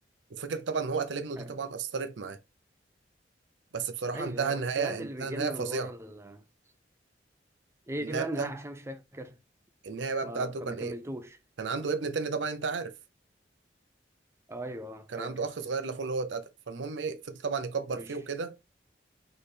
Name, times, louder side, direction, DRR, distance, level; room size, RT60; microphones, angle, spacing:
voice 1, 0.3-2.4 3.7-5.9 8.0-8.5 9.8-11.0 11.6-12.9 15.1-18.6, right 4 dB, 85° right, 0.6 m, -33 dB
voice 2, 4.1-6.4 7.9-9.4 10.2-11.4 14.5-15.4 17.9-18.2, right 1 dB, 15° right, 0.5 m, -38 dB
4.2 x 3.2 x 3.3 m
head